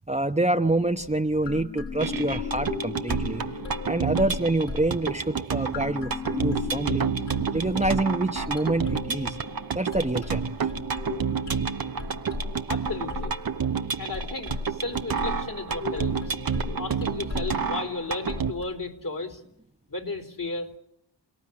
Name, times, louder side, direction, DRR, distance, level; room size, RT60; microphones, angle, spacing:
voice 1, 0.1-3.6 3.9-7.0 7.5-9.4 9.7-10.7, right 2 dB, 15° right, 5 dB, 1.0 m, -27 dB
sound 1, 0.8-1.1 1.4-5.5 5.7-18.6, left 5 dB, 70° left, 7.2 m, -36 dB
sound 2, 2.0-18.5, right 6 dB, 55° right, 1.0 m, -30 dB
voice 2, 12.7-13.3 14.0-16.3 16.8-19.4 19.9-20.8, left 3 dB, 50° left, 5 dB, 3.7 m, -34 dB
28.0 x 17.5 x 9.8 m, 0.79 s
cardioid pair, 55°, 44 cm